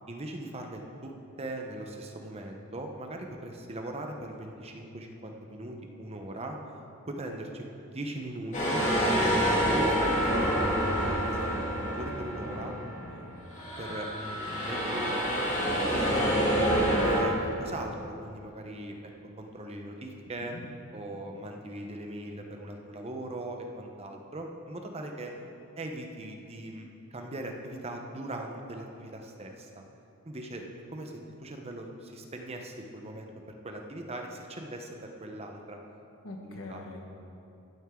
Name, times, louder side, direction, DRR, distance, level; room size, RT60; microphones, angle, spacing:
voice 1, 0.1-6.6 7.1-8.8 9.2-12.7 13.8-15.3 15.7-16.7 17.1-19.1 19.4-20.6 20.9-25.3 25.8-26.8 27.1-29.9 30.2-35.8 36.4-36.8, right 1 dB, 30° right, 2 dB, 0.9 m, -40 dB
sound 1, 8.5-13.1 13.5-17.2, equal, 35° left, 2.4 m, -27 dB
voice 2, 12.4-13.4 20.4-20.6 36.2-37.0, left 1 dB, 70° left, 1 dB, 1.5 m, -43 dB
14.5 x 9.0 x 3.8 m, 2.7 s
head